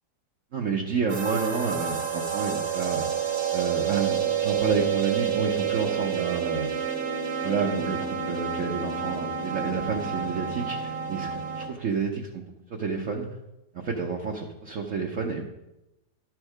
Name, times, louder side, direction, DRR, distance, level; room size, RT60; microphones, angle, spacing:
voice 1, 0.5-3.0 3.5-6.7 7.4-13.3 13.7-15.4, right 5 dB, 55° right, 0 dB, 1.1 m, -29 dB
sound 1, 1.1-11.7, right 7 dB, 70° right, 2.0 m, -29 dB
12.0 x 6.3 x 4.9 m, 0.92 s
omnidirectional pair, 1.9 m